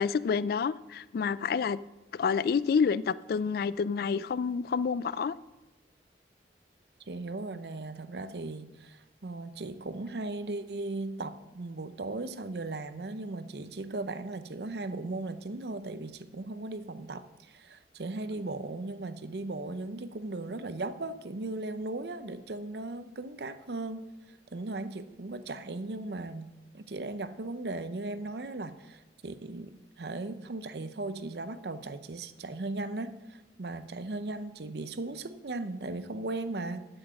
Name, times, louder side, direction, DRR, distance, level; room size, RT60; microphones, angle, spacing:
voice 1, 0.0-1.8 2.1-5.3, left 6 dB, 55° left, 18 dB, 0.3 m, -28 dB
voice 2, 7.1-36.9, right 2 dB, 65° right, 12 dB, 0.7 m, -37 dB
8.6 x 7.1 x 7.5 m, 1.1 s
head